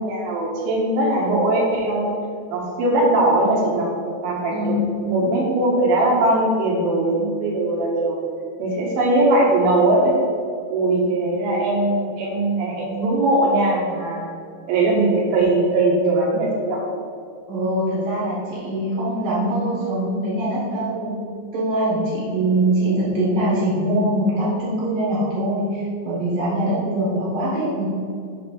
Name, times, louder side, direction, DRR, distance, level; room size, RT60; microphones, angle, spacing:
voice 1, 0.0-2.1 2.5-3.9 4.2-4.8 5.0-8.2 8.6-10.1 10.7-14.3 14.7-16.8, right 2 dB, 90° right, -3 dB, 3.8 m, -20 dB
voice 2, 17.5-21.1 21.5-27.9, right 1 dB, 75° right, -7 dB, 1.2 m, -23 dB
8.2 x 3.5 x 6.3 m, 2.5 s
omnidirectional pair, 5.1 m